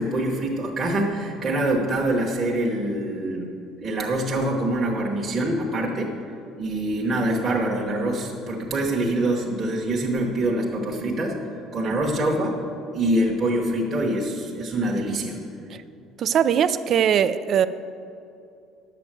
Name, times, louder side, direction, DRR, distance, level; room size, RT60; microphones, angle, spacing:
voice 1, 0.0-3.5 3.8-6.1 6.6-11.4 11.7-12.6 12.9-15.4, right 1 dB, 20° right, -3 dB, 1.1 m, -25 dB
voice 2, 16.2-17.7, right 8 dB, 35° right, 13 dB, 0.4 m, -20 dB
10.5 x 7.8 x 7.5 m, 2.6 s
cardioid pair, 165°, 0 cm